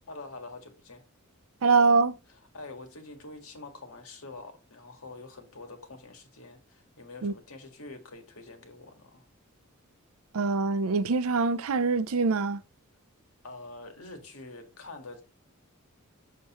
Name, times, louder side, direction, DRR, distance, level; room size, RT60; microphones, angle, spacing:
voice 1, 0.1-1.0 2.5-9.3 13.4-15.2, left 2 dB, 85° left, 1.8 m, -45 dB
voice 2, 1.6-2.1 7.2-7.3 10.3-12.6, right 4 dB, 80° right, 0.5 m, -24 dB
6.6 x 6.5 x 3.0 m
head